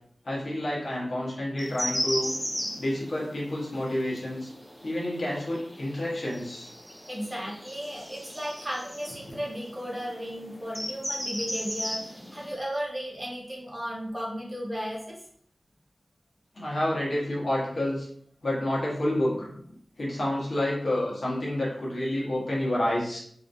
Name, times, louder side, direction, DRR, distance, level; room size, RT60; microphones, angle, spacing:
voice 1, 0.2-2.3 2.8-4.5 4.8-6.7 16.5-18.1 18.4-19.5 20.0-23.2, left 1 dB, 65° left, -5 dB, 1.4 m, -29 dB
sound 1, 1.6-12.6, equal, 10° left, 0.7 m, -37 dB
voice 2, 7.1-15.2 19.3-19.4, equal, 10° right, -4 dB, 1.0 m, -35 dB
3.5 x 3.4 x 2.6 m, 0.63 s
wide cardioid pair, 85°, 0 cm